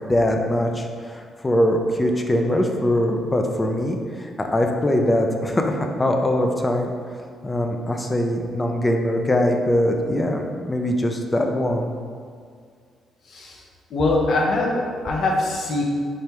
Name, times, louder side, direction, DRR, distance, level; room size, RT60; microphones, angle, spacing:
voice 1, 0.1-6.9 7.4-11.9, left 1 dB, 20° left, 3 dB, 0.5 m, -22 dB
voice 2, 13.3-13.6 13.9-15.8, left 2 dB, 60° left, -1 dB, 0.8 m, -22 dB
5.0 x 3.5 x 3.0 m, 2.1 s
cardioid pair, 90°, 0 cm